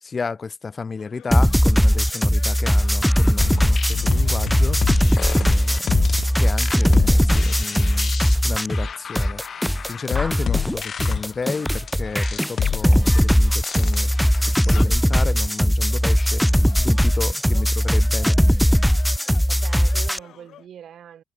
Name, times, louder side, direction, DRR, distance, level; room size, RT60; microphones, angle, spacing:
voice 1, 0.0-4.8 5.4-5.9 6.4-8.1 8.4-9.4 9.8-14.1 14.5-16.5 16.8-18.4, left 4 dB, 35° left, 1.2 m, -32 dB
sound 1, 1.0-20.7, left 11 dB, 75° left, 3.5 m, -50 dB
sound 2, 1.3-8.9 9.2-20.2, equal, ahead, 1.0 m, -19 dB
sound 3, 2.9-14.8, left 7 dB, 50° left, 0.6 m, -28 dB
voice 2, 5.7-6.2 17.5-18.1 19.5-21.2, right 9 dB, 65° right, 3.9 m, -44 dB
cardioid pair, 90°, 0 cm